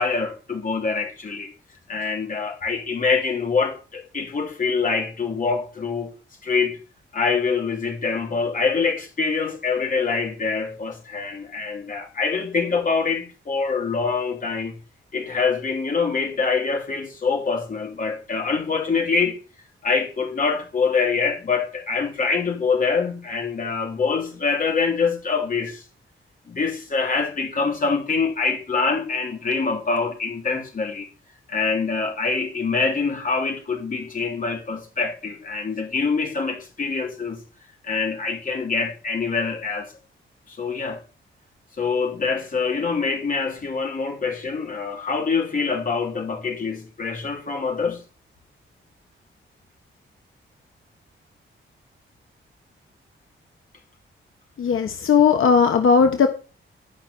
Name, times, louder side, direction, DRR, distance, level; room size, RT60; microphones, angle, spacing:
voice 1, 0.0-1.5 1.9-6.1 6.4-6.8 7.1-14.8 15.1-19.4 19.8-25.8 26.5-31.1 31.5-37.4 37.8-39.9 40.5-41.0 41.8-48.0, left 4 dB, 40° left, 3.6 m, -25 dB
voice 2, 54.6-56.3, left 6 dB, 80° left, 1.3 m, -17 dB
12.5 x 5.8 x 7.1 m
wide cardioid pair, 165°, 21 cm